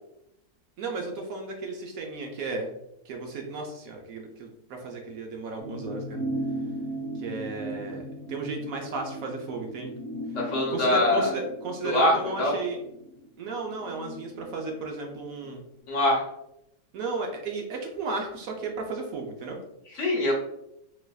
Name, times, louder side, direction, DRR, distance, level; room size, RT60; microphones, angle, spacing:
voice 1, 0.8-2.7 3.1-6.2 7.1-9.9 10.7-12.8 13.4-15.6 16.9-19.6, right 3 dB, 70° right, 2 dB, 0.9 m, -34 dB
sound 1, 5.6-15.4 15.8-15.9, right 1 dB, 30° right, 1.5 m, -37 dB
voice 2, 10.3-11.3 11.8-12.1 12.4-12.5 15.9-16.2 19.9-20.3, left 1 dB, 55° left, -2 dB, 1.0 m, -23 dB
4.1 x 2.5 x 2.2 m, 0.82 s
omnidirectional pair, 1.7 m